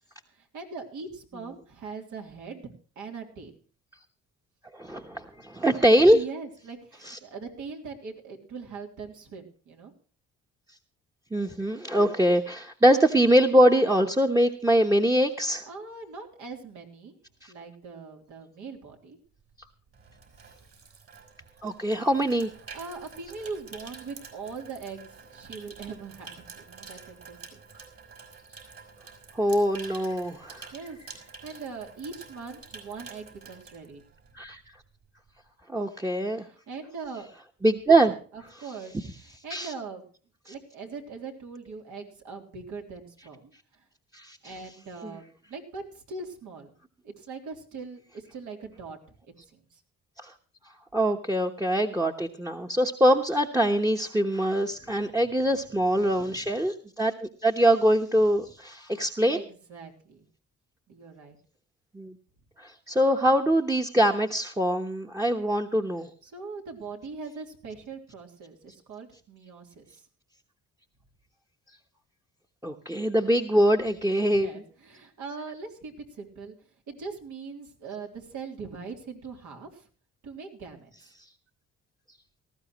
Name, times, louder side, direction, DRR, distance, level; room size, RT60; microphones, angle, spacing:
voice 1, 0.3-2.7 3.0-3.5 6.1-9.9 15.6-17.2 17.5-19.2 22.7-27.6 30.7-34.1 36.3-37.3 38.3-40.1 40.5-43.9 44.4-46.7 47.0-49.0 49.4-49.8 54.8-55.5 56.0-56.5 59.3-60.3 60.9-61.4 66.2-70.0 74.2-76.5 76.9-79.9 80.2-81.1, right 4 dB, 75° right, 2 dB, 3.5 m, -41 dB
voice 2, 4.7-6.2 7.0-7.2 11.3-15.6 17.4-17.5 21.6-22.5 29.3-30.7 34.4-34.6 35.7-36.4 37.6-38.1 39.5-39.7 44.1-44.5 45.0-45.1 50.2-50.3 50.9-59.4 61.9-62.1 62.6-66.1 72.6-74.5, right 1 dB, 10° right, 7 dB, 1.1 m, -23 dB
Water tap faucet / Sink (filling or washing), 19.4-34.5 34.7-35.0, right 4 dB, 50° right, 5.2 m, -48 dB
18.5 x 14.5 x 3.1 m, 0.41 s
cardioid pair, 90°, 30 cm